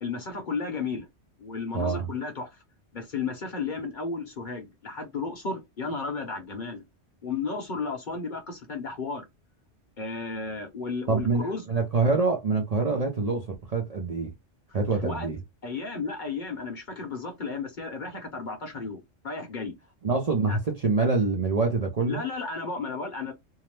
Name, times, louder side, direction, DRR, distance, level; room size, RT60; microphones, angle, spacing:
voice 1, 0.0-1.1 1.4-2.5 2.9-6.8 7.2-9.2 10.0-11.6 15.0-15.3 15.6-19.7 20.5-20.6 22.1-23.3, left 4 dB, 45° left, 0.8 m, -33 dB
voice 2, 1.7-2.1 11.1-14.3 14.7-15.4 20.0-22.2, right 4 dB, 45° right, 0.5 m, -25 dB
2.8 x 2.0 x 3.1 m
omnidirectional pair, 1.2 m